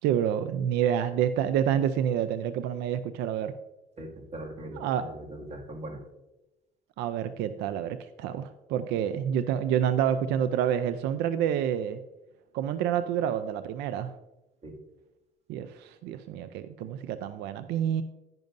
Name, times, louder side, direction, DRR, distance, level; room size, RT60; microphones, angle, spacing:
voice 1, 0.0-3.5 4.7-5.1 7.0-12.0 12.5-14.1 15.5-18.0, right 9 dB, 85° right, 12 dB, 0.4 m, -28 dB
voice 2, 4.0-6.0 14.6-14.7, right 1 dB, 40° right, 1 dB, 2.1 m, -40 dB
10.5 x 10.5 x 2.6 m, 1.0 s
cardioid pair, 110°, 17 cm